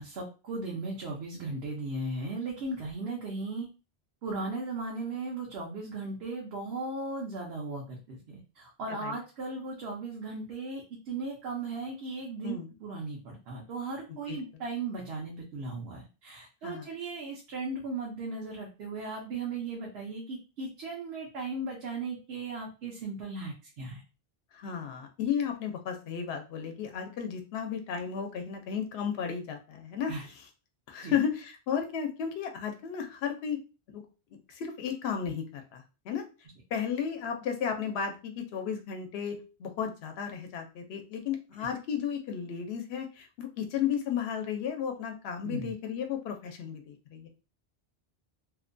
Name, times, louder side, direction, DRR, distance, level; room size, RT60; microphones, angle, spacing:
voice 1, 0.0-3.7 4.2-24.0 30.1-30.3 31.0-31.2 45.4-45.7, right 3 dB, 75° right, -1 dB, 0.9 m, -37 dB
voice 2, 14.1-14.4 16.6-16.9 24.5-30.4 30.9-33.6 33.9-34.0 34.5-36.2 36.7-47.3, left 7 dB, 75° left, 5 dB, 0.8 m, -34 dB
2.6 x 2.1 x 2.5 m, 0.32 s
omnidirectional pair, 1.1 m